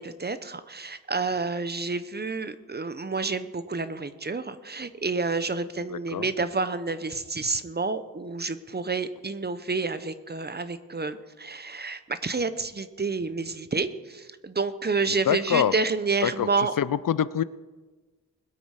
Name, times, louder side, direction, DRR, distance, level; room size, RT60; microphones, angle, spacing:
voice 1, 0.0-16.7, right 4 dB, 30° right, 12 dB, 0.7 m, -29 dB
voice 2, 5.9-6.3 15.3-15.7 16.2-17.4, left 9 dB, 65° left, 17 dB, 0.5 m, -25 dB
21.0 x 8.5 x 4.8 m, 1.3 s
wide cardioid pair, 145°, 35 cm